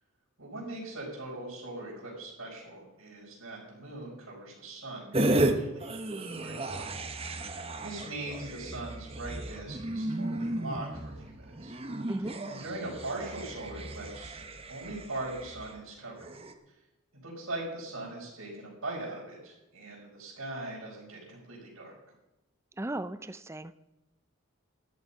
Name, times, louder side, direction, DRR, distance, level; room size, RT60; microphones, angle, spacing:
voice 1, 0.4-6.9 7.3-11.7 12.2-14.4 14.7-16.3 17.2-21.9, right 2 dB, 85° right, -8 dB, 5.4 m, -41 dB
sound 1, 5.1-5.5 5.8-15.7 16.2-16.5, right 1 dB, 30° right, 0.9 m, -34 dB
voice 2, 22.8-23.7, right 1 dB, 15° right, 13 dB, 0.5 m, -36 dB
13.0 x 11.0 x 5.6 m, 0.97 s
head